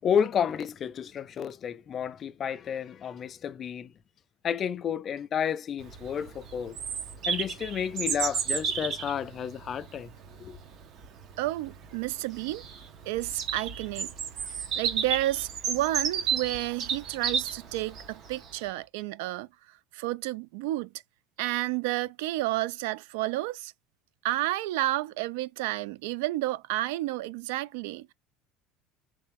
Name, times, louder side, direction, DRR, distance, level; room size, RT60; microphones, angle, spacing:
voice 1, 0.0-3.9 4.4-6.8 7.3-10.1 10.4-10.6, left 8 dB, 30° left, 0.3 m, -31 dB
Bird vocalization bird call bird song, 5.8-18.5, right 6 dB, 40° right, 0.9 m, -33 dB
voice 2, 11.4-12.6 13.1-14.1 14.7-19.5 19.9-20.9 21.4-23.7 24.2-28.1, right 16 dB, 85° right, 0.3 m, -31 dB
3.9 x 3.2 x 3.5 m
cardioid pair, 160°, 0 cm